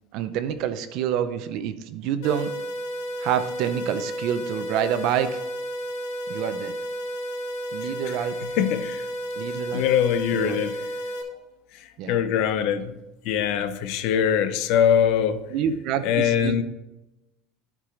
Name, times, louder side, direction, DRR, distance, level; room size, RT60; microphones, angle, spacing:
voice 1, 0.1-2.5 3.2-5.4 6.3-6.7 7.7-8.3 9.4-9.9 10.3-10.6 12.0-12.2 15.5-16.6, right 9 dB, 55° right, 0.6 m, -27 dB
sound 1, 2.2-11.2, equal, 85° left, 1.4 m, -32 dB
voice 2, 8.4-9.0 9.7-10.8 12.1-12.9 13.3-15.4 16.0-16.6, left 9 dB, 55° left, 0.6 m, -22 dB
11.5 x 4.8 x 3.8 m
cardioid pair, 160°, 0 cm